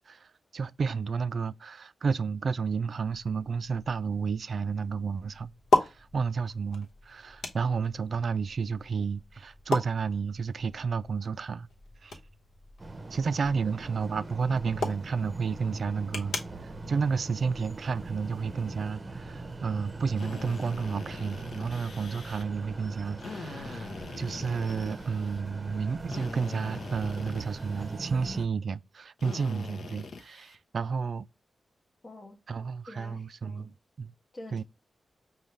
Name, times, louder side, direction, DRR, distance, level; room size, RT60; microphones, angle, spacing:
voice 1, 0.1-5.5 5.8-11.7 12.0-12.2 13.1-16.4 16.6-23.9 24.2-31.3 32.5-34.1 34.5-34.6, right 5 dB, 60° right, 0.3 m, -31 dB
sound 1, 3.0-18.2, left 1 dB, 85° left, 1.0 m, -37 dB
sound 2, 12.8-28.5, right 2 dB, 30° right, 0.6 m, -41 dB
Drill, 20.2-22.4 23.2-25.4 26.1-28.0 29.2-30.6, left 4 dB, 70° left, 0.6 m, -43 dB
voice 2, 32.0-32.4 32.9-33.7 34.3-34.6, left 1 dB, 30° left, 0.8 m, -46 dB
5.5 x 2.3 x 3.2 m
wide cardioid pair, 105°, 0 cm